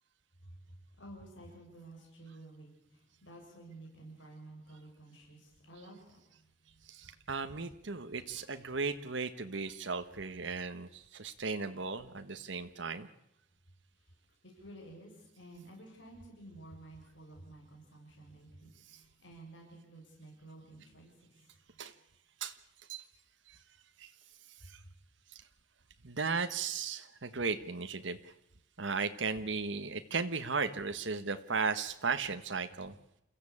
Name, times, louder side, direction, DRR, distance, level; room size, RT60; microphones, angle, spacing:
voice 1, 0.4-7.2 14.0-14.1 14.4-21.8 24.6-24.7, right 1 dB, 70° left, 0 dB, 7.3 m, -53 dB
voice 2, 6.8-13.1 18.9-19.0 21.8-21.9 22.4-22.6 22.9-23.0 23.5-23.6 24.0-24.1 24.6-24.8 26.0-28.3 28.8-32.9, right 4 dB, 70° right, 8 dB, 1.3 m, -36 dB
29.0 x 14.5 x 8.7 m, 0.85 s
head